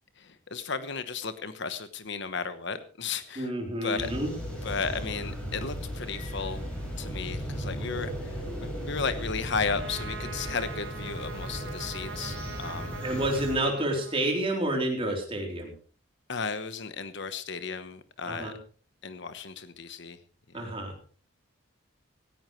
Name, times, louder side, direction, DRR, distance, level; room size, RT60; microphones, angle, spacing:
voice 1, 0.2-3.5 3.8-4.1 4.6-6.7 7.0-13.0 16.3-18.5 19.0-20.2 20.5-20.7, left 5 dB, 55° left, 11 dB, 1.1 m, -34 dB
voice 2, 3.4-4.3 13.0-15.7 18.3-18.6 20.5-20.9, right 1 dB, 25° right, 1 dB, 3.8 m, -29 dB
sound 1, 4.0-13.5, equal, 5° left, 6.5 m, -36 dB
Trumpet, 9.5-14.8, right 5 dB, 60° right, 1.9 m, -43 dB
17.0 x 16.0 x 3.2 m, 0.41 s
head